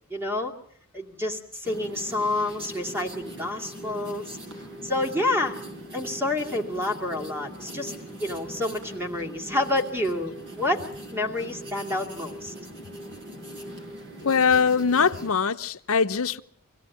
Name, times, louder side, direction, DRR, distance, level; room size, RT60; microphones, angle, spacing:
voice 1, 0.1-0.5 0.9-4.4 4.8-5.6 5.9-7.9 8.2-10.3 10.6-10.8 11.1-12.5, left 2 dB, 10° right, 2.4 m, -28 dB
sound 1, 1.6-15.3, equal, 55° right, 5.4 m, -41 dB
voice 2, 14.2-16.4, left 5 dB, 70° left, 0.8 m, -22 dB
24.5 x 17.0 x 8.4 m
head